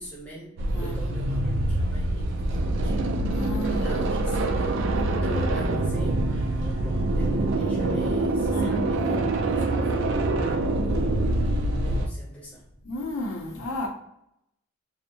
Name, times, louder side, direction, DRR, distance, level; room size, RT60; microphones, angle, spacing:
voice 1, 0.0-3.1 3.5-4.9 5.2-12.6, equal, 5° left, 0.6 m, -41 dB
sound 1, 0.6-12.1, right 2 dB, 55° right, 0.3 m, -25 dB
voice 2, 3.3-3.9 8.5-9.0 12.8-13.9, equal, 65° left, 0.6 m, -32 dB
sound 2, 3.6-12.1, right 2 dB, 75° right, 0.7 m, -39 dB
2.6 x 2.0 x 2.7 m
head